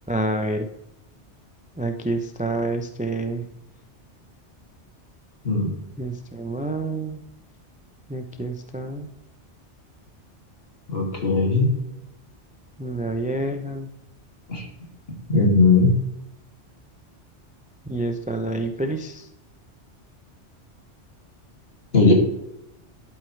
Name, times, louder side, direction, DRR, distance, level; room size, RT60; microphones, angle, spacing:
voice 1, 0.1-0.7 1.8-3.4 6.0-7.2 8.1-9.1 12.8-13.9 17.9-19.2, right 2 dB, 10° right, 6 dB, 0.5 m, -28 dB
voice 2, 5.4-5.8 10.9-11.7 14.5-14.7 15.3-16.0 21.9-22.1, left 3 dB, 55° left, 0 dB, 2.7 m, -18 dB
12.0 x 8.0 x 3.3 m, 0.84 s
omnidirectional pair, 1.2 m